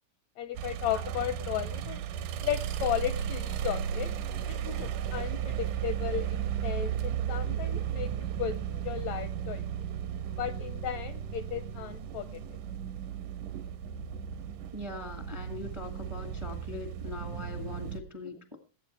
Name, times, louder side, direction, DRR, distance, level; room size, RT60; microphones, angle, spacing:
voice 1, 0.4-2.0 2.4-4.1 4.5-9.6 10.4-12.4 18.2-18.3, left 10 dB, 80° left, 12 dB, 1.6 m, -35 dB
sound 1, 0.6-18.0, right 9 dB, 75° right, 2.4 m, -35 dB
voice 2, 14.7-18.6, left 2 dB, 45° right, 5 dB, 0.3 m, -41 dB
20.5 x 8.6 x 3.2 m, 0.35 s
omnidirectional pair, 3.8 m